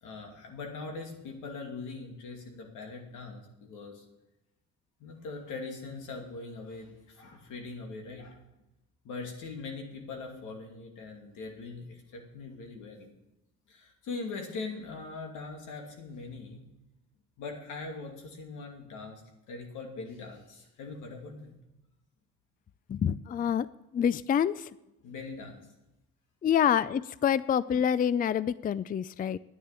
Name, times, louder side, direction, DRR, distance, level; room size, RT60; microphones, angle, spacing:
voice 1, 0.0-4.1 5.0-8.4 9.0-13.1 13.7-16.6 17.4-19.2 19.5-21.5 25.0-25.6, left 3 dB, 90° left, 2 dB, 2.6 m, -41 dB
voice 2, 22.9-23.7 23.9-24.7 26.4-29.4, left 8 dB, 30° left, 18 dB, 0.4 m, -27 dB
10.0 x 9.6 x 6.8 m, 0.94 s
cardioid pair, 90°, 30 cm